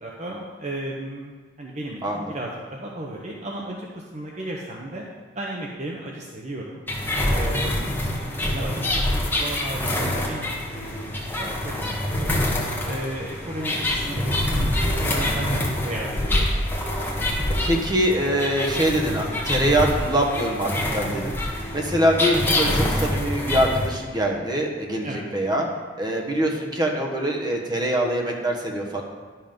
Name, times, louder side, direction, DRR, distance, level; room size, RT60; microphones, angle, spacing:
voice 1, 0.0-5.0 5.3-6.8 7.3-8.0 8.4-10.4 10.7-12.4 12.8-16.5 21.1-21.2 25.0-25.2, right 1 dB, 40° right, -2 dB, 0.9 m, -35 dB
voice 2, 2.0-2.3 17.6-21.3 21.7-25.7 26.0-29.0, right 1 dB, 25° right, 0 dB, 1.3 m, -24 dB
sound 1, 6.9-23.9, left 1 dB, 10° left, 1.4 m, -25 dB
11.0 x 5.7 x 5.3 m, 1.4 s
head